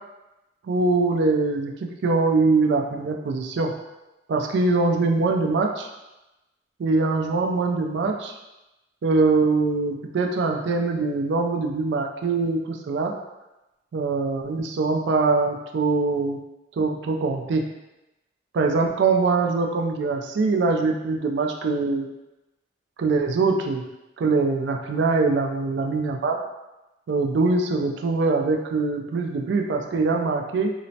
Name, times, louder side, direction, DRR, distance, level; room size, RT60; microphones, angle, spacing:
voice 1, 0.7-3.7 4.3-5.9 6.8-8.3 9.0-13.1 13.9-16.4 16.8-17.6 18.5-22.1 23.0-23.8 24.2-26.4 27.1-30.7, right 3 dB, 60° right, 2 dB, 0.3 m, -23 dB
3.1 x 2.0 x 2.7 m, 0.99 s
head